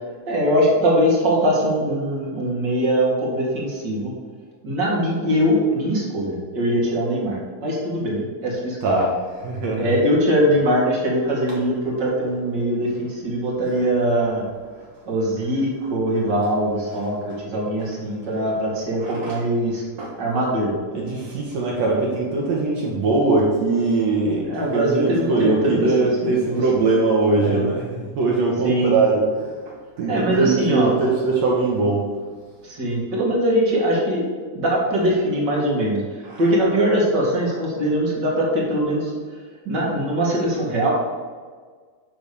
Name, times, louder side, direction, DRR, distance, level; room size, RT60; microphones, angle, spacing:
voice 1, 0.3-4.1 4.6-8.8 9.8-14.4 15.1-19.8 20.2-20.7 24.4-26.6 27.4-27.6 28.6-28.9 30.1-31.0 32.6-36.0 36.4-39.2 39.7-40.9, equal, 35° right, -4 dB, 2.2 m, -22 dB
voice 2, 8.8-9.2 9.4-9.9 13.7-13.8 19.0-19.4 20.0-20.1 20.9-32.1 36.2-36.4, right 3 dB, 65° right, -2 dB, 1.9 m, -21 dB
10.5 x 3.5 x 6.9 m, 1.5 s
omnidirectional pair, 4.3 m